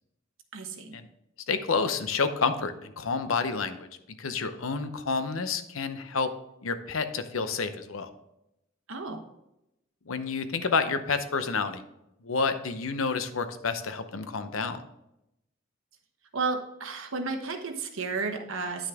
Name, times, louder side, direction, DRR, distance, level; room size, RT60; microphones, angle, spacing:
voice 1, 0.5-0.9 8.9-9.2 16.3-18.9, right 4 dB, 80° right, 5 dB, 1.2 m, -32 dB
voice 2, 1.5-3.9 4.2-6.3 6.6-8.1 10.1-11.8 12.2-14.8, left 4 dB, 85° left, 10 dB, 0.8 m, -29 dB
9.7 x 6.3 x 3.5 m, 0.86 s
head